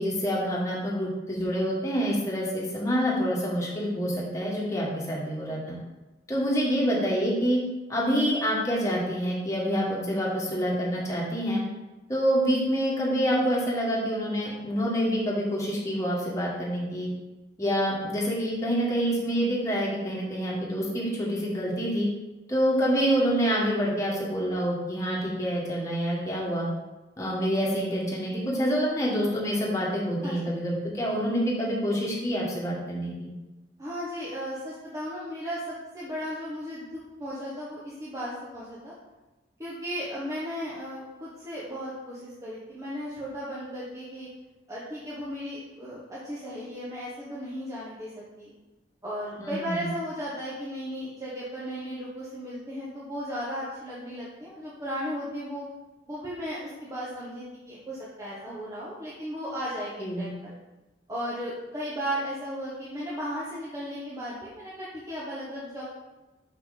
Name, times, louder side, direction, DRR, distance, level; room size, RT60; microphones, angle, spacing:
voice 1, 0.0-5.8 6.3-7.6 7.9-11.6 12.1-17.1 17.6-22.1 22.5-26.7 27.2-33.3 49.4-49.9 60.0-60.3, equal, 20° left, -5 dB, 1.8 m, -27 dB
voice 2, 33.8-38.9 39.6-44.3 44.7-48.5 49.0-55.7 56.1-60.5 61.1-65.8, equal, 20° right, -9 dB, 1.3 m, -35 dB
6.5 x 5.8 x 4.2 m, 1.1 s
head